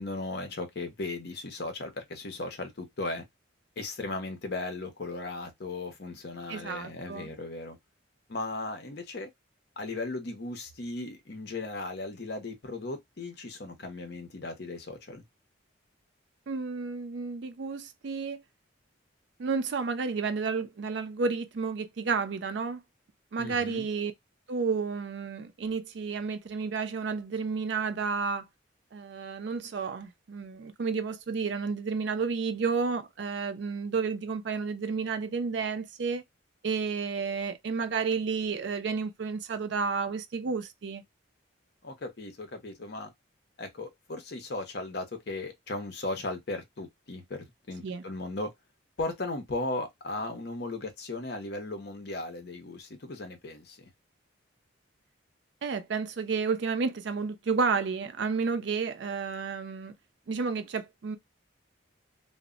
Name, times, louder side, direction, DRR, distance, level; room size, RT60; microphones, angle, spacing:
voice 1, 0.0-3.3 3.8-7.8 8.3-9.3 9.8-15.2 23.4-23.9 41.8-43.1 43.6-48.5 49.0-53.9, left 2 dB, 55° left, 0.7 m, -37 dB
voice 2, 6.5-7.3 16.5-18.4 19.4-22.8 23.3-24.1 24.5-28.4 28.9-36.2 36.6-41.0 47.8-48.0 55.6-59.9 60.3-61.2, right 5 dB, 60° right, 0.4 m, -31 dB
2.1 x 2.1 x 3.6 m
head